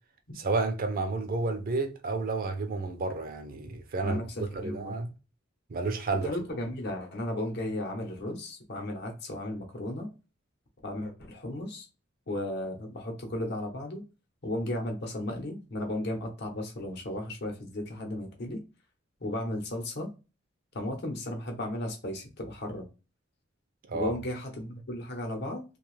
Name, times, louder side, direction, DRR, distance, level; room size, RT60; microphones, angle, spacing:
voice 1, 0.4-4.2 4.5-5.1 5.7-6.3 23.9-24.1, right 3 dB, 45° right, 0.5 m, -31 dB
voice 2, 4.0-4.9 6.2-10.1 10.8-11.9 12.3-14.0 14.4-18.6 19.2-20.1 20.7-22.9 23.9-25.6, left 1 dB, 60° left, 0.8 m, -35 dB
2.7 x 2.3 x 3.1 m
head